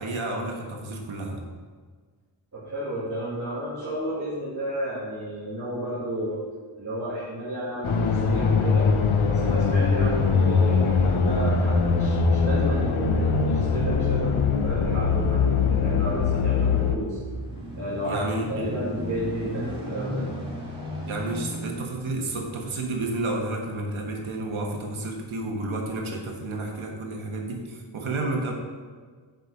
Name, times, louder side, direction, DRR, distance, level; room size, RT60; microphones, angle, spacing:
voice 1, 0.0-1.4 18.0-18.8 21.0-28.5, right 2 dB, 80° right, 1 dB, 1.5 m, -31 dB
voice 2, 2.5-6.4 6.8-8.9 9.2-17.2 17.8-18.2 18.5-20.3, right 1 dB, 35° right, -10 dB, 2.1 m, -32 dB
sound 1, 7.8-17.0, left 5 dB, 80° left, 0.9 m, -22 dB
sound 2, 16.8-25.2 25.8-26.0, left 1 dB, 10° right, 1.9 m, -37 dB
7.4 x 5.3 x 6.4 m, 1.5 s
wide cardioid pair, 155°, 48 cm